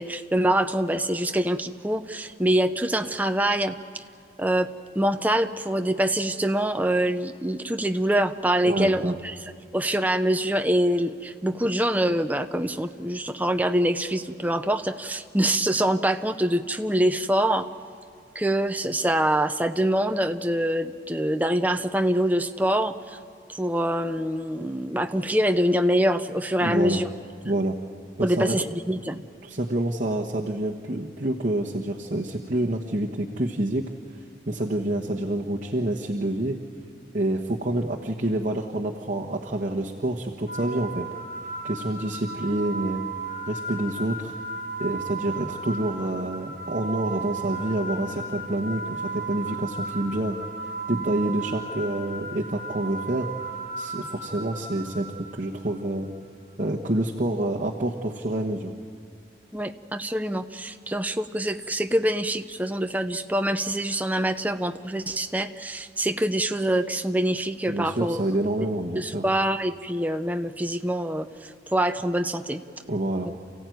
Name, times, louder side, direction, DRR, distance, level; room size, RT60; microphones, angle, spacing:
voice 1, 0.0-4.0 4.4-9.3 9.7-17.7 18.3-23.2 23.6-27.1 28.2-29.2 59.5-68.2 68.9-71.3 71.7-72.6, right 1 dB, 10° right, 8 dB, 0.7 m, -25 dB
voice 2, 8.7-9.1 11.6-11.7 26.6-27.0 27.4-27.8 28.2-28.6 29.4-33.8 34.5-36.6 37.1-41.1 41.6-43.1 43.5-44.3 44.8-50.4 50.9-53.3 53.8-55.1 55.3-56.1 56.6-58.7 67.7-69.2 72.9-73.3, right 1 dB, 45° right, -1 dB, 1.3 m, -27 dB
sound 1, 40.5-55.6, right 3 dB, 60° left, 6.0 m, -35 dB
29.0 x 15.5 x 9.3 m, 2.3 s
head